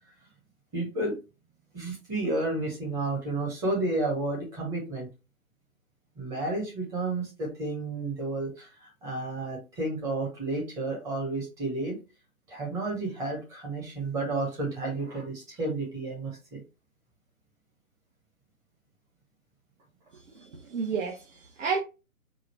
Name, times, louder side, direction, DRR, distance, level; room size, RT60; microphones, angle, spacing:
voice 1, 0.7-1.1 1.7-5.1 6.2-12.0 12.5-16.6, right 2 dB, 5° right, 0.9 m, -31 dB
voice 2, 20.3-21.8, right 5 dB, 60° right, 1.3 m, -31 dB
4.9 x 2.4 x 4.4 m
hypercardioid pair, 155°, 42 cm